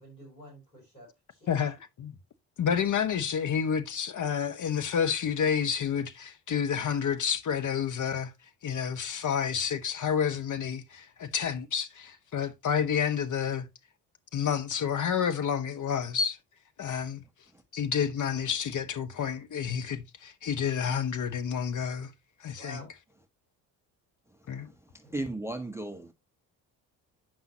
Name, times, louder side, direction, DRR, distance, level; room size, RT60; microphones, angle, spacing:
voice 1, 0.0-1.6 22.5-22.9 25.0-25.2, right 1 dB, 90° left, 3.4 m, -49 dB
voice 2, 1.5-2.1 2.6-8.3 8.6-13.6 14.3-16.4 16.8-17.2 17.7-22.1 22.4-22.8 24.5-24.7, left 7 dB, 35° left, 1.1 m, -29 dB
voice 3, 24.9-26.1, right 2 dB, 5° right, 0.8 m, -35 dB
8.8 x 5.5 x 2.8 m
hypercardioid pair, 50°, 50 cm